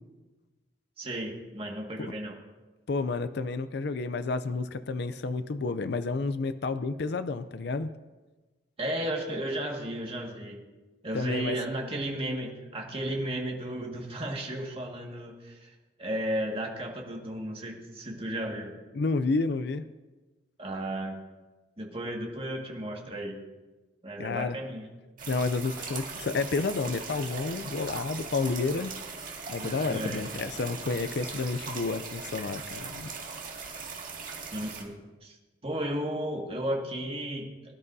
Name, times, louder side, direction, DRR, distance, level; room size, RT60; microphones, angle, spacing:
voice 1, 1.0-2.4 8.8-10.6 11.0-15.7 16.0-18.7 20.6-21.2 21.8-23.4 24.0-24.9 29.6-30.2 34.5-34.9 35.2-35.4 35.6-37.5, right 1 dB, 30° right, 0 dB, 1.9 m, -34 dB
voice 2, 2.9-7.9 11.1-11.6 18.9-19.8 24.2-24.6 25.3-28.9 29.5-33.1, left 3 dB, 65° left, 12 dB, 0.5 m, -30 dB
sound 1, 25.2-34.8, right 5 dB, 50° right, 2.1 m, -40 dB
22.0 x 11.0 x 2.7 m, 1.2 s
head